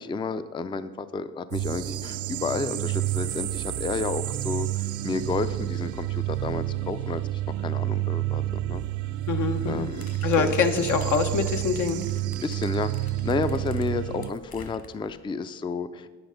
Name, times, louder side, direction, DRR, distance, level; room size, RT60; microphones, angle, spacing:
voice 1, 0.0-8.4 8.7-8.8 9.7-10.1 10.4-10.5 12.4-16.1, left 4 dB, 15° left, 12 dB, 0.4 m, -31 dB
sound 1, 1.5-14.3, right 15 dB, 80° right, 0.5 m, -29 dB
voice 2, 9.3-9.9 10.2-12.0, left 5 dB, 75° left, 6 dB, 1.0 m, -24 dB
sound 2, 10.0-15.2, left 4 dB, 45° left, 1.5 m, -47 dB
9.7 x 7.9 x 5.2 m, 1.4 s
cardioid pair, 90°, 30 cm